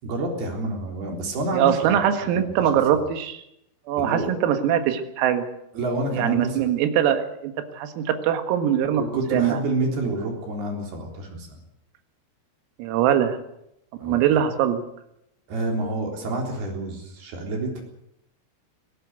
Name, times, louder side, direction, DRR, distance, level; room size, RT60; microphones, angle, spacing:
voice 1, 0.0-2.0 2.4-2.7 4.0-4.3 5.7-6.6 9.0-11.6 14.0-14.2 15.5-17.8, right 2 dB, 50° right, 2 dB, 5.4 m, -28 dB
voice 2, 1.5-3.4 3.9-5.4 6.1-9.0 9.3-9.6 12.8-13.4 14.0-14.8, right 9 dB, 85° right, 8 dB, 4.4 m, -22 dB
20.0 x 17.5 x 8.2 m, 0.80 s
omnidirectional pair, 5.9 m